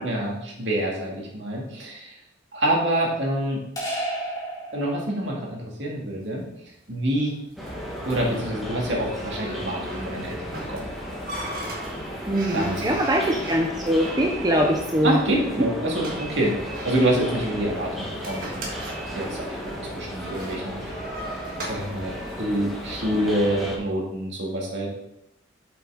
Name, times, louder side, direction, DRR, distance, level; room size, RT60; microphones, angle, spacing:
voice 1, 0.0-2.2 2.5-3.6 4.7-6.4 6.9-7.3 8.1-10.8 12.5-13.0 15.0-16.5 16.8-18.7 19.1-20.9 21.6-24.9, right 1 dB, 70° right, -2 dB, 2.1 m, -26 dB
sound 1, 3.8-5.4, right 1 dB, 20° left, 2.2 m, -31 dB
sound 2, 6.1-23.3, right 1 dB, 45° right, 1.5 m, -41 dB
sound 3, 7.6-23.8, equal, ahead, 1.4 m, -34 dB
voice 2, 12.3-15.7, equal, 20° right, 1 dB, 0.5 m, -23 dB
7.5 x 6.0 x 3.8 m, 0.83 s
head